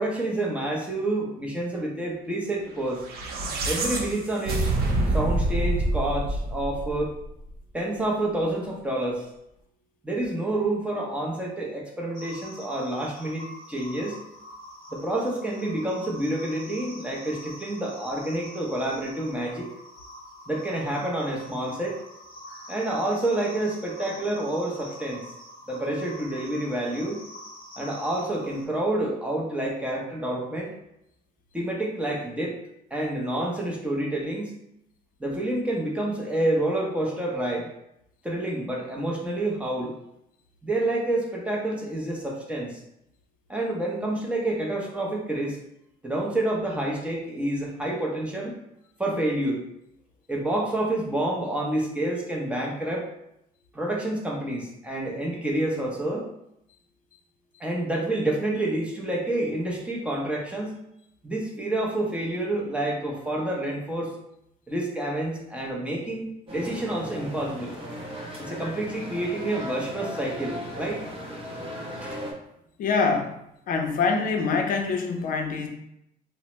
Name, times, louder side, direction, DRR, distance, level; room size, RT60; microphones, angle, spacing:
voice 1, 0.0-3.0 3.6-4.7 5.1-7.2 7.7-9.3 10.0-14.2 14.9-19.7 20.5-22.0 22.7-25.2 25.7-27.2 27.8-30.7 31.5-32.6 32.9-34.5 35.2-37.7 38.2-39.9 40.6-42.8 43.5-45.6 46.0-48.6 49.0-49.6 50.3-53.1 53.7-56.3 57.6-60.8 61.2-64.1 64.7-67.7 68.4-71.0 72.0-72.2, right 1 dB, 5° right, -2 dB, 0.6 m, -28 dB
sound 1, 2.9-7.3, right 2 dB, 65° right, 0.6 m, -26 dB
sound 2, 12.1-28.6, left 1 dB, 25° left, 1.0 m, -45 dB
sound 3, 66.5-72.3, equal, 35° right, 0.9 m, -37 dB
voice 2, 72.8-73.3 73.7-75.7, left 4 dB, 55° left, 4 dB, 0.5 m, -25 dB
2.8 x 2.0 x 3.0 m, 0.79 s
cardioid pair, 110°, 17 cm